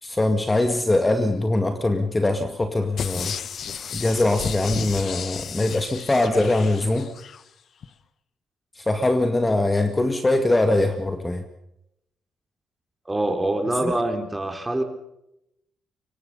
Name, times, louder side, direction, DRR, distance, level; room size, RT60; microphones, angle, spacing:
voice 1, 0.0-3.4 3.9-7.1 8.8-11.4 13.8-13.9, left 2 dB, 20° left, 7 dB, 2.0 m, -22 dB
sound 1, 3.0-7.4 7.8-7.9, left 7 dB, 55° left, 1.3 m, -33 dB
voice 2, 13.1-14.8, right 1 dB, 15° right, 6 dB, 3.9 m, -25 dB
24.5 x 23.0 x 5.5 m, 0.82 s
cardioid pair, 90°, 0 cm